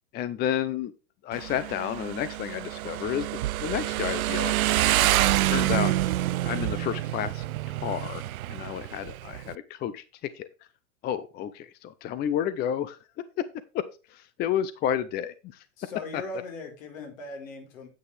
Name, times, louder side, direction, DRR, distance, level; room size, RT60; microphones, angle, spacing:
voice 1, 0.1-0.9 1.2-4.7 5.0-5.1 5.5-5.9 6.4-7.4 7.8-8.2 8.5-10.0 10.3-10.5 11.0-13.0 13.7-15.6 16.1-16.2, left 10 dB, 25° left, 15 dB, 0.6 m, -31 dB
Motorcycle, 1.3-9.5, right 15 dB, 85° right, 0.6 m, -27 dB
voice 2, 15.8-17.9, left 2 dB, 70° left, 3 dB, 4.5 m, -39 dB
9.5 x 8.2 x 3.4 m, 0.32 s
hypercardioid pair, 120°, 41 cm